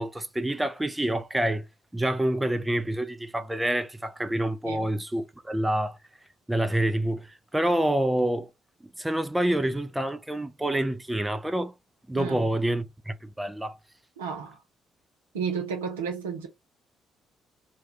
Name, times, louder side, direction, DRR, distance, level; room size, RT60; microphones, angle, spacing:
voice 1, 0.0-1.7 1.9-6.0 6.5-8.5 9.0-11.7 12.1-13.8, right 1 dB, 10° right, 0.5 m, -27 dB
voice 2, 12.1-12.5 14.2-14.6 15.3-16.5, right 6 dB, 85° right, 0.7 m, -32 dB
2.3 x 2.2 x 2.8 m
hypercardioid pair, 45°, 0 cm